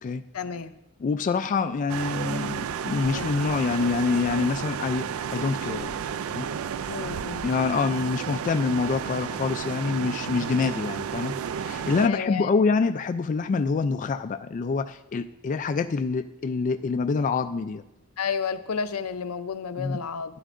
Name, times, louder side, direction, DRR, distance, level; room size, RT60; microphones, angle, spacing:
voice 1, 0.3-0.7 3.1-3.3 6.9-7.4 12.0-12.5 18.2-20.4, left 6 dB, 80° left, 11 dB, 0.6 m, -31 dB
voice 2, 1.0-6.0 6.3-6.5 7.4-17.8 19.8-20.0, left 4 dB, 35° left, 8 dB, 0.3 m, -26 dB
sound 1, 1.9-12.1, right 7 dB, 70° right, 0.4 m, -32 dB
12.5 x 10.0 x 2.5 m, 0.90 s
head